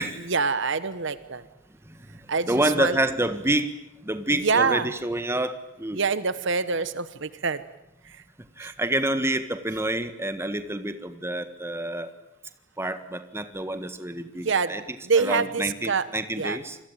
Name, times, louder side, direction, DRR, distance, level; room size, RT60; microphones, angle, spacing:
voice 1, 0.3-1.5 2.3-3.0 4.3-4.9 5.9-7.6 8.0-8.2 8.6-8.7 14.4-14.8 15.0-16.1 16.4-16.6, right 4 dB, 55° right, 14 dB, 1.1 m, -25 dB
voice 2, 1.9-3.7 4.0-6.0 8.6-12.1 12.8-14.8 15.2-16.8, right 1 dB, 10° right, 10 dB, 1.6 m, -28 dB
28.0 x 22.0 x 9.0 m, 0.84 s
head